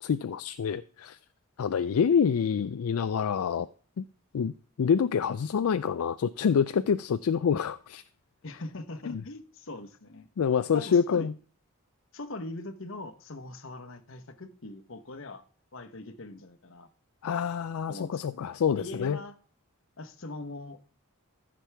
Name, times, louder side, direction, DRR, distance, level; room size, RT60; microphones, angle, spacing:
voice 1, 0.0-1.2 1.6-3.7 4.0-4.1 4.3-4.5 4.8-8.0 9.1-9.2 10.4-11.3 17.2-19.2, left 7 dB, 75° left, 0.4 m, -26 dB
voice 2, 8.4-10.3 10.7-11.3 12.1-15.4 15.7-16.9 17.9-18.5 18.7-19.4 20.0-20.8, left 2 dB, 60° left, 1.0 m, -41 dB
14.5 x 6.2 x 3.4 m
head